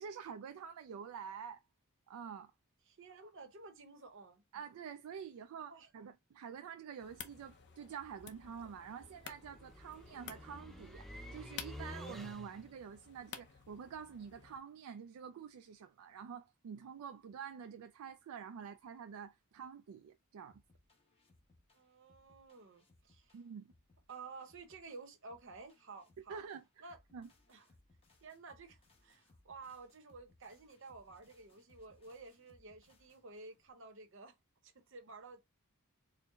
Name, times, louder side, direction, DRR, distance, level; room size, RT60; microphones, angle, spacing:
voice 1, 0.0-1.6 2.1-2.5 4.5-20.6 23.3-23.7 26.3-27.3, right 7 dB, 75° right, 0.3 m, -48 dB
voice 2, 2.9-4.4 5.7-5.9 21.7-23.4 24.1-26.4 26.8-27.0 27.5-27.6 28.2-34.3 34.6-35.4, right 3 dB, 60° right, 0.8 m, -53 dB
sound 1, 7.0-14.6, left 7 dB, 55° left, 0.6 m, -53 dB
sound 2, 7.1-12.8, equal, ahead, 0.5 m, -51 dB
sound 3, 20.5-33.7, left 2 dB, 25° left, 1.0 m, -69 dB
4.5 x 2.1 x 3.4 m
head